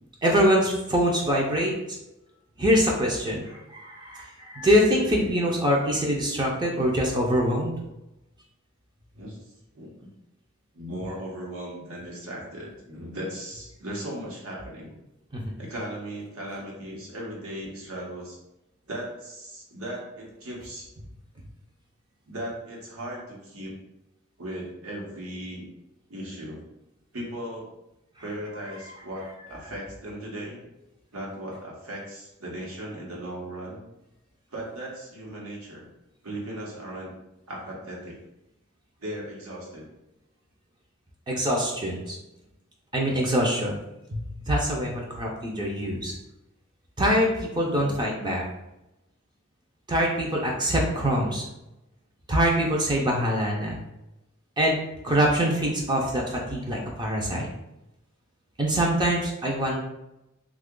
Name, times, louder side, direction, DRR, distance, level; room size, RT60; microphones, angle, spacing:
voice 1, 0.2-1.7 2.6-7.8 15.3-15.5 41.3-42.2 42.9-43.8 44.1-46.1 47.0-48.4 49.9-51.4 52.3-53.8 54.6-54.8 55.0-57.5 58.6-59.8, equal, 20° right, -1 dB, 0.5 m, -24 dB
voice 2, 4.9-5.3 9.2-9.4 9.7-10.1 10.7-14.9 15.6-18.4 18.9-20.9 22.3-23.7 24.4-25.7 26.1-26.7 27.1-27.7 28.2-30.6 31.1-33.8 34.5-35.9 36.2-37.1 37.5-38.2 39.0-39.9 47.7-47.9 50.5-50.6, right 1 dB, 80° right, -3 dB, 1.1 m, -37 dB
2.9 x 2.4 x 3.6 m, 0.91 s
head